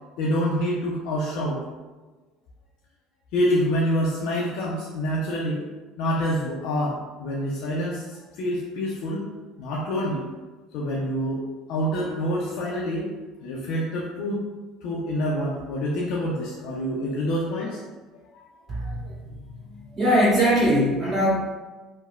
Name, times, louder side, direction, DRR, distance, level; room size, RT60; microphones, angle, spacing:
voice 1, 0.2-1.6 3.3-5.6 6.0-9.3 9.6-10.3 10.7-11.4 11.7-13.1 13.4-14.5 14.8-17.8 18.3-18.4, equal, 70° left, -5 dB, 0.4 m, -26 dB
voice 2, 18.7-19.3 19.6-21.3, equal, 30° right, -11 dB, 1.4 m, -22 dB
2.9 x 2.0 x 2.3 m, 1.2 s
supercardioid pair, 85°, 0 cm